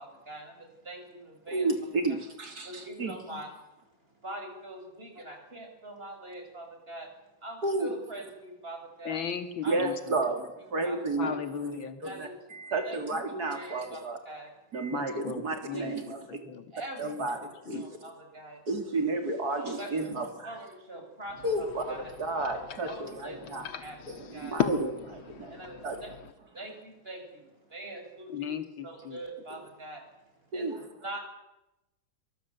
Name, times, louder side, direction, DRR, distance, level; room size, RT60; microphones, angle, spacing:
voice 1, 0.0-1.7 2.6-3.5 4.1-7.1 7.4-9.2 9.6-9.8 10.8-11.3 12.0-12.3 12.8-13.0 13.5-14.5 15.7-15.9 16.7-17.2 17.7-18.6 19.6-20.1 20.4-22.1 22.9-24.6 25.5-26.1 26.5-28.5 28.8-31.2, right 1 dB, 25° right, 4 dB, 6.2 m, -43 dB
voice 2, 1.5-3.1 7.6-7.9 9.7-14.2 14.7-16.2 17.0-17.4 17.7-17.8 18.7-20.6 21.4-23.7 24.1-25.6 25.8-26.0 30.5-30.8, right 2 dB, 50° right, 5 dB, 3.8 m, -32 dB
voice 3, 9.0-9.9 11.2-12.0 14.9-16.0 16.3-16.7 17.0-17.3 17.7-17.8 28.3-29.2, left 8 dB, 70° left, 8 dB, 2.8 m, -36 dB
sound 1, 21.3-26.3, left 9 dB, 90° left, 2.3 m, -37 dB
23.5 x 22.0 x 8.1 m, 0.94 s
omnidirectional pair, 2.2 m